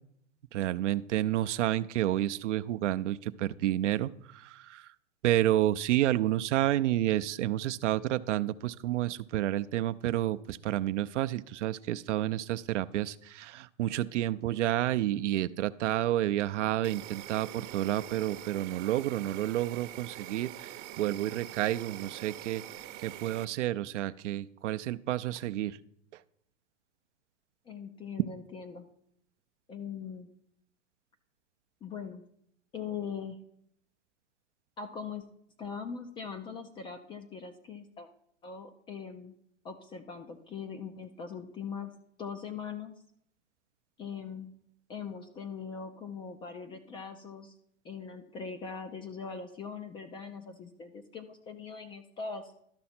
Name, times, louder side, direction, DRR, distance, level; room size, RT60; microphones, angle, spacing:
voice 1, 0.5-4.9 5.2-20.7 21.0-22.6 23.0-25.8, right 13 dB, 75° right, 11 dB, 0.5 m, -30 dB
Insect, 16.8-23.4, right 13 dB, 40° right, 0.7 m, -44 dB
voice 2, 27.7-28.9 29.7-30.3 31.8-32.2 32.7-33.4 34.8-35.2 35.6-38.1 38.4-39.3 39.6-41.9 42.2-42.9 44.0-44.6 44.9-47.6 47.8-52.5, left 6 dB, 15° left, 7 dB, 0.3 m, -41 dB
12.0 x 5.7 x 4.3 m, 0.71 s
hypercardioid pair, 120°, 36 cm